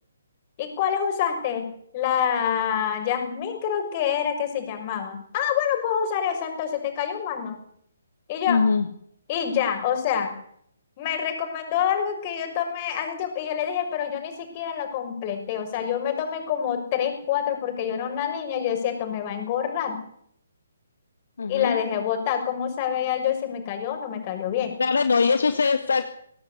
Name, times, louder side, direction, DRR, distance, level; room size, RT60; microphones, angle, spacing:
voice 1, 0.6-1.7 1.9-7.6 8.3-8.6 9.3-10.3 11.0-20.0 21.5-24.7, left 8 dB, 30° left, 5 dB, 6.5 m, -27 dB
voice 2, 8.5-8.9 21.4-21.8 24.8-26.1, left 5 dB, 60° left, 8 dB, 1.8 m, -22 dB
24.0 x 17.5 x 8.5 m, 0.69 s
figure-of-eight pair, 135°, 0 cm